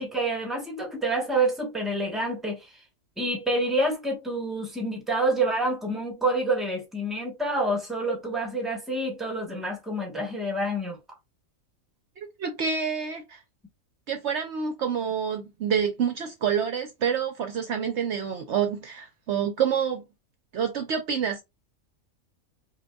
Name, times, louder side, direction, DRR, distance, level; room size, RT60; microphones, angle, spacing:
voice 1, 0.0-2.7 3.2-11.0, right 2 dB, ahead, 1.1 m, -27 dB
voice 2, 12.4-13.4 14.1-20.0 20.5-21.4, right 7 dB, 65° right, 0.9 m, -27 dB
5.1 x 2.6 x 2.3 m
omnidirectional pair, 1.4 m